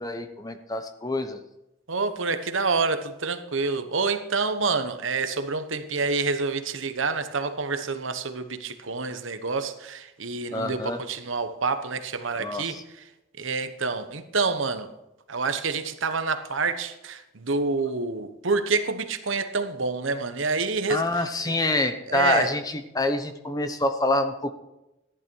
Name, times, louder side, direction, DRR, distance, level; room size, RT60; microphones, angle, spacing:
voice 1, 0.0-1.4 10.5-11.0 12.4-12.8 20.9-24.5, left 2 dB, 20° left, 0.9 m, -26 dB
voice 2, 1.9-13.0 13.4-14.9 15.3-21.2 22.1-22.5, right 4 dB, 75° right, 1.1 m, -28 dB
14.0 x 11.0 x 4.6 m
head